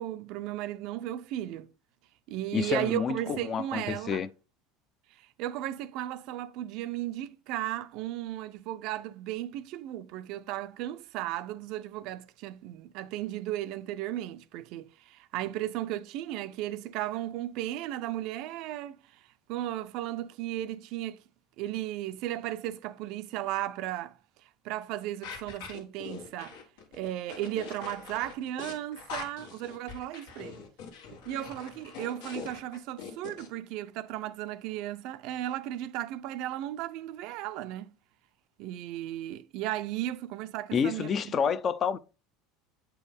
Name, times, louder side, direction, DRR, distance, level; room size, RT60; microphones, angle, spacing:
voice 1, 0.0-1.7 2.3-4.2 5.2-19.0 19.5-21.2 21.6-24.2 24.6-26.6 26.9-30.6 31.1-37.9 38.6-41.5, right 13 dB, 60° right, 0.4 m, -35 dB
voice 2, 2.5-4.3 40.7-42.0, left 7 dB, 30° left, 0.4 m, -29 dB
sound 1, 25.2-33.5, left 6 dB, 90° left, 1.6 m, -43 dB
7.9 x 4.5 x 3.4 m
supercardioid pair, 135°, 0 cm